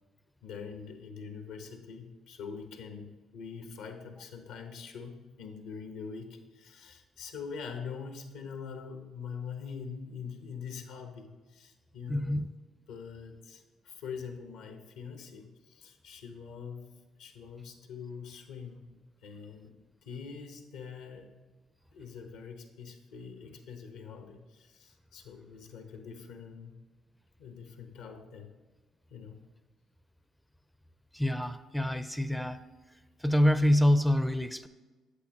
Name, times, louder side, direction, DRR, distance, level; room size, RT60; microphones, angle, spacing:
voice 1, 0.4-12.4 12.9-16.9 17.2-18.8 19.2-21.4 21.9-26.7 27.4-28.5 29.1-29.4, left 6 dB, 85° left, 5 dB, 1.0 m, -44 dB
voice 2, 12.1-12.5 31.1-32.6 33.2-34.7, left 1 dB, ahead, 10 dB, 0.4 m, -26 dB
8.4 x 8.0 x 2.9 m, 1.3 s
supercardioid pair, 65°, 0 cm